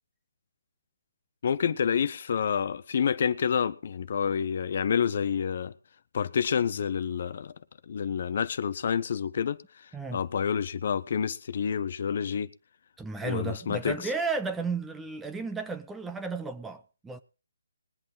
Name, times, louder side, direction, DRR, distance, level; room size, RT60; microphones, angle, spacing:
voice 1, 1.4-5.7 6.1-7.6 7.9-12.5 13.2-14.1, left 7 dB, 45° left, 0.7 m, -28 dB
voice 2, 13.0-17.2, right 4 dB, 5° right, 0.7 m, -33 dB
20.5 x 8.6 x 3.8 m
figure-of-eight pair, 155°, 0 cm